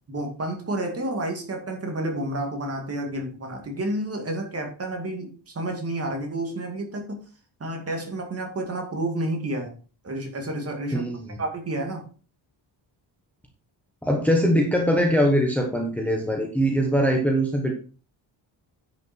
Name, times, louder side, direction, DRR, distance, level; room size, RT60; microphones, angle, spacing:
voice 1, 0.1-7.2 7.6-9.7 10.0-11.1 11.4-12.0, right 1 dB, 30° right, 2 dB, 2.4 m, -30 dB
voice 2, 10.9-11.4 14.0-17.7, equal, 5° left, 1 dB, 1.2 m, -22 dB
10.0 x 6.1 x 4.5 m, 0.37 s
wide cardioid pair, 160°, 46 cm